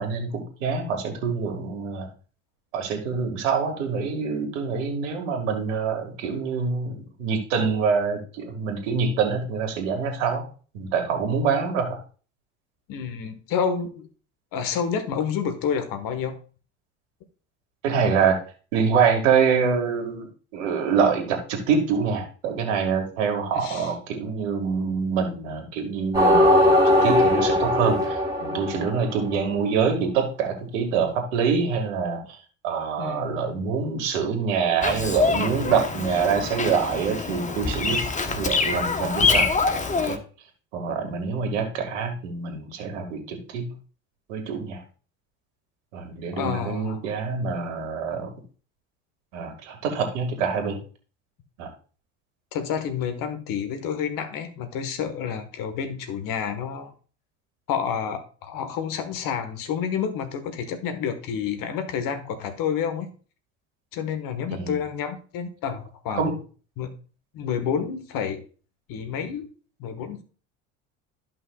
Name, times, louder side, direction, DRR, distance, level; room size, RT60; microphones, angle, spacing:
voice 1, 0.0-2.1 2.7-10.5 10.7-12.0 17.8-18.4 18.7-32.4 32.6-39.5 39.9-40.2 40.7-43.7 44.3-44.8 45.9-48.3 49.3-50.8 51.6-51.7 64.5-64.7 66.1-66.3, right 6 dB, 75° right, 4 dB, 2.0 m, -25 dB
voice 2, 12.9-14.1 14.5-16.4 23.5-23.9 33.0-33.6 46.4-47.0 52.5-56.9 57.7-63.1 63.9-66.2 66.8-66.9 67.3-68.4 68.9-69.5 69.8-70.2, left 7 dB, 55° left, 8 dB, 1.5 m, -29 dB
sound 1, 26.1-29.5, left 1 dB, 10° right, 4.3 m, -20 dB
Bird vocalization bird call bird song, 34.8-40.2, left 4 dB, 20° left, 1.0 m, -25 dB
13.5 x 5.6 x 2.4 m, 0.39 s
hypercardioid pair, 70°, 38 cm